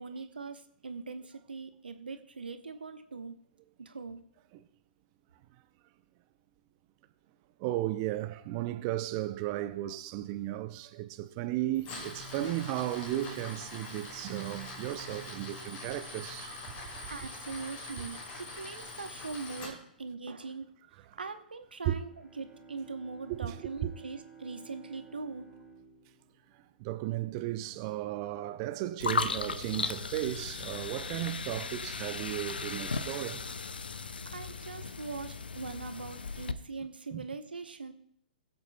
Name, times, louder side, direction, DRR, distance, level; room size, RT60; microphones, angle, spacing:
voice 1, 0.0-3.4 3.8-4.2 16.7-20.7 21.2-22.1 22.4-25.5 33.9-37.9, right 4 dB, 80° right, 0.8 m, -41 dB
voice 2, 7.6-16.7 18.0-18.1 21.8-22.0 23.3-23.6 23.8-23.9 26.8-33.4 37.1-37.2, right 14 dB, 35° right, 0.5 m, -35 dB
Tools, 11.7-19.7, left 2 dB, 30° left, 3.0 m, -43 dB
Bowed string instrument, 22.0-27.5, right 6 dB, 5° left, 1.6 m, -54 dB
sound 1, 29.0-36.5, left 4 dB, 75° left, 0.6 m, -36 dB
22.5 x 7.8 x 2.2 m
figure-of-eight pair, 120°, 5 cm